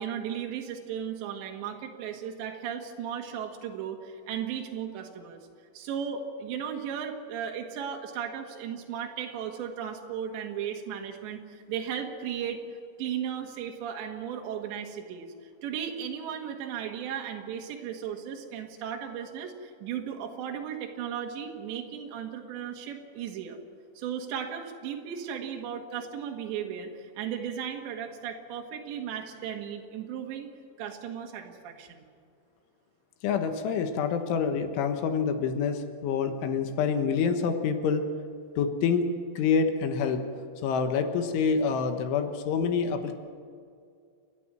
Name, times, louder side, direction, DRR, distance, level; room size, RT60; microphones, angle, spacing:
voice 1, 0.0-5.4 5.7-12.6 13.0-15.3 15.6-23.6 24.0-30.5 30.8-32.1, right 8 dB, 65° right, 2 dB, 3.8 m, -36 dB
voice 2, 33.2-38.0 38.6-39.1 39.4-40.2 40.6-43.2, left 6 dB, 75° left, 7 dB, 3.5 m, -27 dB
30.0 x 11.0 x 8.9 m, 2.3 s
omnidirectional pair, 5.9 m